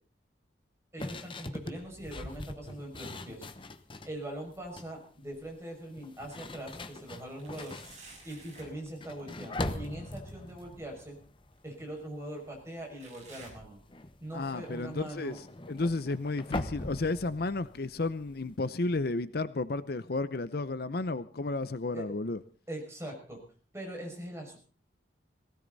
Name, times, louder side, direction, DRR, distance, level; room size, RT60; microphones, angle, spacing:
voice 1, 0.9-3.5 4.0-7.8 8.2-11.2 11.6-13.8 14.2-15.4 21.9-22.1 22.7-23.4 23.7-24.6, right 1 dB, 15° right, 1 dB, 6.0 m, -42 dB
sound 1, 1.0-4.2 4.5-5.0 5.9-12.1 12.4-12.8 13.1-18.6, left 1 dB, 25° left, 1.0 m, -42 dB
sound 2, 2.8-3.5 3.9-5.8 6.3-6.4 7.4-8.8 10.5-10.6 11.5-11.6 13.0-14.3 14.7-15.1 15.7-15.8 16.7-16.8, right 3 dB, 35° right, 7.0 m, -55 dB
voice 2, 14.3-15.4 15.7-22.4, left 3 dB, 55° left, 14 dB, 0.6 m, -32 dB
19.0 x 17.0 x 4.0 m, 0.42 s
head